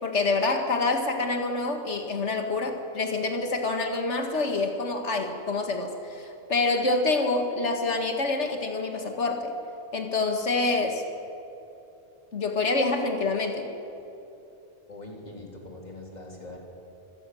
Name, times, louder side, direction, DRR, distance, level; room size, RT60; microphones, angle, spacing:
voice 1, 0.0-9.5 9.9-11.0 12.3-13.7, left 3 dB, 75° left, 4 dB, 2.0 m, -27 dB
voice 2, 14.9-16.6, left 2 dB, 35° left, 0 dB, 3.4 m, -42 dB
26.0 x 14.0 x 7.7 m, 2.9 s
omnidirectional pair, 1.2 m